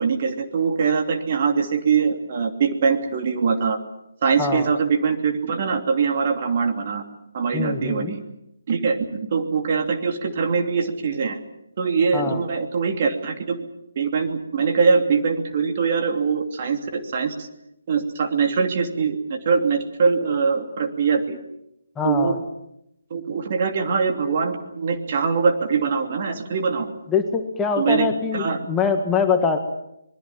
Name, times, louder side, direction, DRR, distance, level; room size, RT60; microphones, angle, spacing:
voice 1, 0.0-3.8 4.2-7.0 7.3-8.2 8.7-11.4 11.8-13.6 14.0-17.5 17.9-21.4 22.0-22.4 23.1-26.9 27.8-28.1 28.3-28.6, right 5 dB, 40° right, 5 dB, 2.8 m, -22 dB
voice 2, 7.5-8.1 12.1-12.4 22.0-22.4 27.1-29.6, left 5 dB, 10° left, 3 dB, 1.8 m, -23 dB
26.0 x 21.0 x 7.3 m, 0.82 s
figure-of-eight pair, 150°, 0 cm